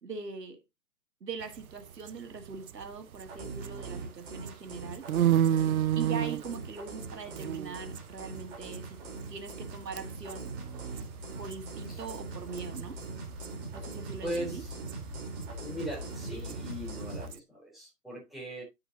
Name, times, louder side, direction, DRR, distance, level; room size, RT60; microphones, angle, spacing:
voice 1, 0.0-0.6 1.2-5.1 6.0-9.0 9.3-10.5 11.4-13.0 13.7-14.6, right 5 dB, 90° right, 2.1 m, -41 dB
sound 1, 1.4-3.9 4.3-9.7 10.0-10.4 10.6-10.7 11.0-13.5 13.8-17.4, right 10 dB, 60° right, 0.7 m, -31 dB
sound 2, 3.2-17.3, right 3 dB, 40° right, 4.0 m, -42 dB
voice 2, 14.2-14.7 15.6-18.6, equal, ahead, 3.7 m, -39 dB
9.2 x 7.8 x 2.8 m
hypercardioid pair, 155°, 48 cm